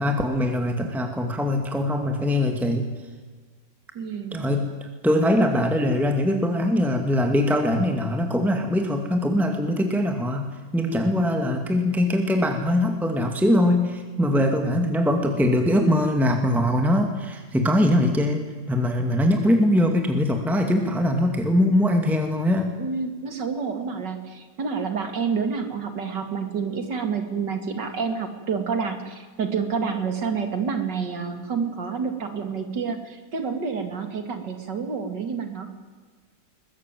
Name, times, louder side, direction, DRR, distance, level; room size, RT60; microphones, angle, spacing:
voice 1, 0.0-2.9 4.3-10.5 10.7-18.4 18.7-22.7, left 1 dB, ahead, 4 dB, 2.2 m, -22 dB
voice 2, 3.9-4.5 22.8-35.7, right 5 dB, 75° right, 7 dB, 3.2 m, -28 dB
22.5 x 21.0 x 9.2 m, 1.4 s
omnidirectional pair, 1.9 m